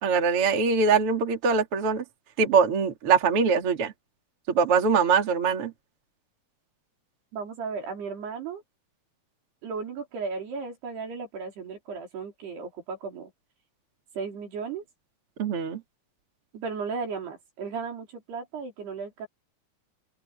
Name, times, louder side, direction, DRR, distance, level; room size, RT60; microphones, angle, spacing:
voice 1, 0.0-2.0 2.4-3.9 4.5-5.7 15.4-15.8, right 5 dB, 35° right, 3.2 m, -23 dB
voice 2, 7.3-8.6 9.6-13.3 14.1-14.8 16.5-19.3, right 5 dB, 75° right, 6.7 m, -35 dB
open air
omnidirectional pair, 4.8 m